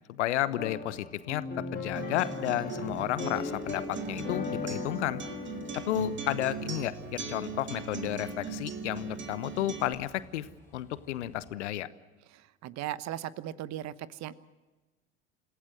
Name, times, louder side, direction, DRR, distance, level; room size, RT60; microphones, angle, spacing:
voice 1, 0.1-5.2 5.8-10.5 10.7-11.9, left 13 dB, 75° left, 16 dB, 1.1 m, -32 dB
sound 1, 0.6-9.1, left 5 dB, 25° left, 2.8 m, -39 dB
Acoustic guitar, 2.0-9.9, right 5 dB, 30° right, 2.3 m, -39 dB
Train, 2.7-11.5, left 1 dB, 10° left, 6.4 m, -58 dB
voice 2, 12.3-14.3, right 13 dB, 50° right, 17 dB, 1.1 m, -38 dB
26.5 x 16.5 x 7.8 m, 1.2 s
figure-of-eight pair, 65°, 36 cm